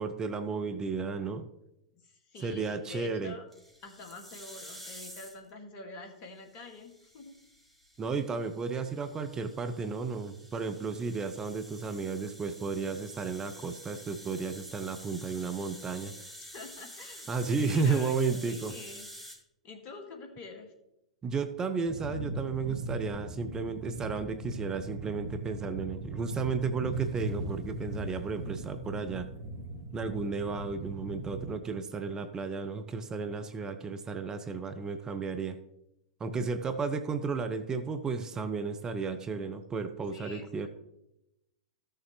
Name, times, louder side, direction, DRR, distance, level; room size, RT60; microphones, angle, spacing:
voice 1, 0.0-1.5 2.4-3.3 8.0-16.1 17.3-18.8 21.2-29.3 29.9-35.6 36.2-40.7, right 4 dB, 20° right, 8 dB, 0.7 m, -33 dB
voice 2, 2.0-3.5 3.8-7.3 16.4-17.3 17.5-19.1 19.6-20.7 40.1-40.7, left 3 dB, 40° left, 4 dB, 1.9 m, -46 dB
sound 1, 3.5-5.5 6.6-19.4, equal, 5° left, 2.7 m, -49 dB
sound 2, 21.9-31.5, right 1 dB, 50° right, 1.5 m, -39 dB
14.0 x 6.7 x 3.1 m, 0.87 s
figure-of-eight pair, 100°, 3 cm